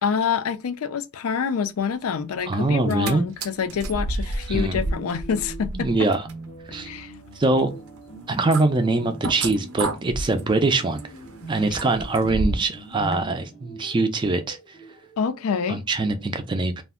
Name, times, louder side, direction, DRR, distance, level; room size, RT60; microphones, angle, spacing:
voice 1, 0.0-6.1 6.8-7.1 15.2-15.8, left 6 dB, 90° left, 0.4 m, -26 dB
sound 1, 2.4-15.7, right 3 dB, 30° left, 0.6 m, -42 dB
voice 2, 2.5-3.2 4.5-4.8 5.7-6.3 6.7-6.9 7.4-7.7 8.3-11.0 11.5-14.6 15.7-16.8, right 3 dB, 20° right, 0.3 m, -23 dB
sound 2, 2.7-3.1 3.4-12.8 13.1-13.2, right 2 dB, 90° right, 0.6 m, -31 dB
2.4 x 2.0 x 3.5 m
head